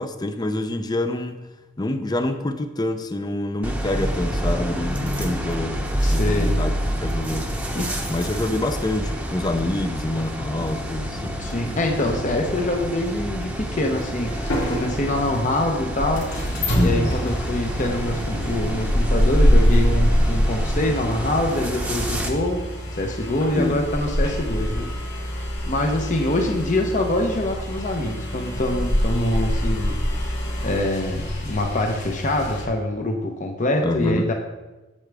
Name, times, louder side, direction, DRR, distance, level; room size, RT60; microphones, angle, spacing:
voice 1, 0.0-1.4 1.8-5.8 6.1-6.7 7.0-7.5 8.1-11.3 16.7-17.1 23.5-23.8 33.8-34.3, left 1 dB, 20° left, 9 dB, 0.6 m, -26 dB
sound 1, 3.6-22.3, equal, 5° right, 0.9 m, -28 dB
voice 2, 6.0-6.6 7.7-8.0 11.4-16.3 16.8-22.7 23.0-25.3 25.7-30.0 30.6-34.3, left 1 dB, 40° left, 2 dB, 0.9 m, -25 dB
sound 2, 14.2-32.7, equal, 65° left, 2.6 m, -24 dB
8.5 x 7.8 x 3.5 m, 1.1 s
head